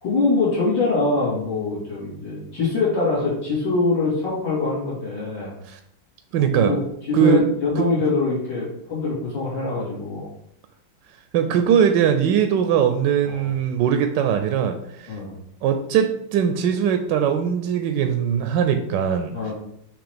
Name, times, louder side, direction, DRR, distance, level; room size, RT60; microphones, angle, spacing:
voice 1, 0.0-5.5 6.4-10.3 13.2-13.5 15.1-15.3 19.3-19.5, left 3 dB, 70° left, -8 dB, 3.4 m, -24 dB
voice 2, 6.3-6.8 7.1-7.5 7.8-7.9 11.3-15.2 15.6-19.5, right 8 dB, 75° right, 7 dB, 1.2 m, -20 dB
7.0 x 3.1 x 5.0 m, 0.74 s
omnidirectional pair, 2.1 m